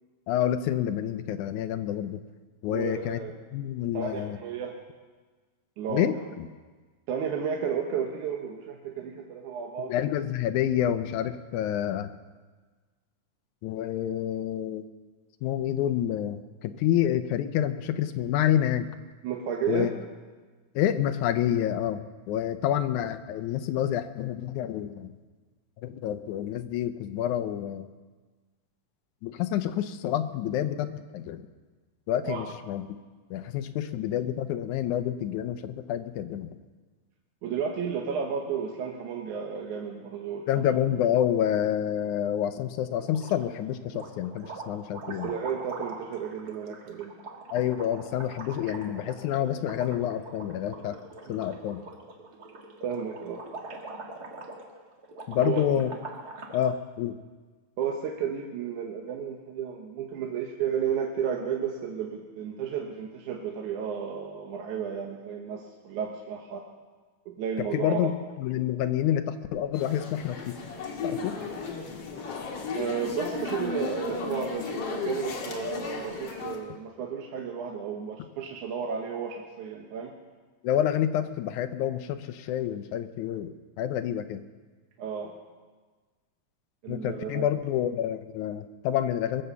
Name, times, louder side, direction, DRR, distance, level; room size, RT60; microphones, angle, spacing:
voice 1, 0.3-2.2 2.6-3.2 3.5-4.4 5.9-6.5 9.8-12.1 13.6-14.8 15.4-18.9 19.7-19.9 20.8-25.1 25.8-27.9 29.2-31.5 32.1-32.9 33.3-36.6 40.5-45.3 47.5-51.0 51.3-51.8 55.3-55.9 56.5-57.2 67.6-70.6 71.0-71.4 80.6-84.4 86.9-89.4, left 10 dB, 75° left, 10 dB, 2.0 m, -28 dB
voice 2, 2.7-3.3 3.9-4.7 5.8-6.1 7.1-9.9 19.2-19.9 32.2-32.5 37.4-40.5 45.2-47.2 51.2-51.4 52.8-53.4 55.4-55.6 57.8-66.6 67.3-68.1 72.7-80.1 85.0-85.3 86.8-87.5, right 7 dB, 70° right, 0 dB, 2.4 m, -32 dB
sound 1, 42.9-43.6 43.9-56.6, right 3 dB, 40° right, 1.5 m, -43 dB
sound 2, 69.7-76.6, left 5 dB, 55° left, 2.4 m, -35 dB
21.5 x 7.7 x 6.9 m, 1.4 s
omnidirectional pair, 3.7 m